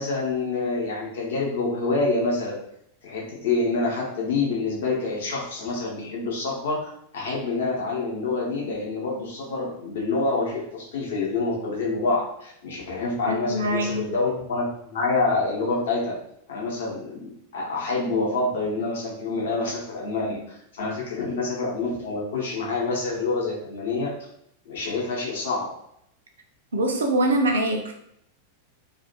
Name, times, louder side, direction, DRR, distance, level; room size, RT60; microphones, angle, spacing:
voice 1, 0.0-2.6 3.0-16.1 16.5-24.1 24.7-25.7, left 3 dB, 60° left, -3 dB, 0.8 m, -27 dB
voice 2, 13.3-14.1 26.7-27.9, right 1 dB, 65° right, 3 dB, 0.4 m, -23 dB
2.4 x 2.3 x 2.6 m, 0.72 s
figure-of-eight pair, 90°, 0 cm